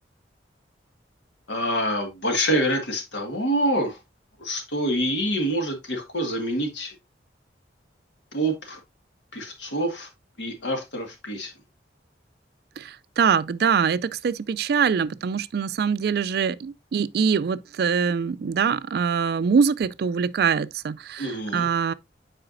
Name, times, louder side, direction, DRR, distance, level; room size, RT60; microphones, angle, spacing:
voice 1, 1.5-4.0 4.4-6.9 8.3-8.8 9.3-10.1 10.4-11.5 21.2-21.7, equal, 85° left, 1.7 m, -26 dB
voice 2, 12.8-21.9, right 6 dB, 60° right, 0.3 m, -24 dB
7.8 x 4.9 x 2.5 m
head